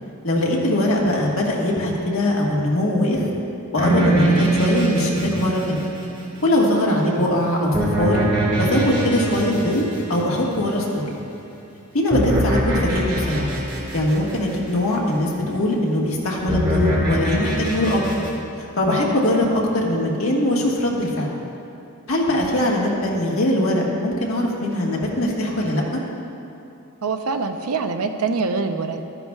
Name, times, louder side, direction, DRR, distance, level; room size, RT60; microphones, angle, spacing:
voice 1, 0.2-3.3 3.7-5.9 6.4-8.2 8.6-11.1 11.9-13.5 13.9-18.0 18.6-21.3 22.1-26.0, left 1 dB, 70° left, -3 dB, 1.5 m, -21 dB
sound 1, 3.8-6.6 7.7-11.2 12.1-14.8 16.5-18.3, right 1 dB, 25° right, 1.8 m, -23 dB
voice 2, 27.0-29.0, right 4 dB, 85° right, 7 dB, 0.6 m, -24 dB
13.0 x 9.8 x 2.3 m, 2.7 s
head